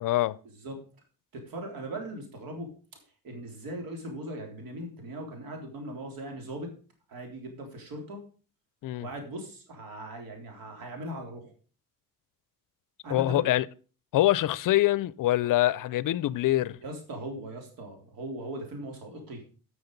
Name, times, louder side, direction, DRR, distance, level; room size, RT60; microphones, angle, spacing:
voice 1, 0.0-0.4 8.8-9.1 13.1-13.6 14.1-16.8, left 15 dB, 65° left, 0.6 m, -24 dB
voice 2, 1.3-2.7 3.2-6.7 7.1-8.2 9.0-11.5 13.0-13.5 16.8-19.4, right 1 dB, 75° right, 3.6 m, -39 dB
11.5 x 6.3 x 5.3 m
cardioid pair, 110°, 35 cm